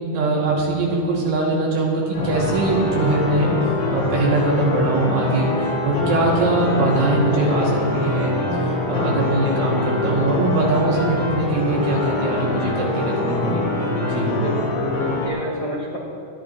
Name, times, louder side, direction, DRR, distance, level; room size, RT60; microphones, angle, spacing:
voice 1, 0.1-3.5 3.9-5.5 5.8-13.6 14.0-14.3, right 2 dB, 80° right, -4 dB, 4.7 m, -22 dB
sound 1, 2.1-15.3, left 2 dB, 85° left, 6.4 m, -24 dB
voice 2, 14.2-16.0, equal, 45° left, -7 dB, 1.4 m, -29 dB
27.0 x 11.0 x 3.1 m, 2.6 s
omnidirectional pair, 5.3 m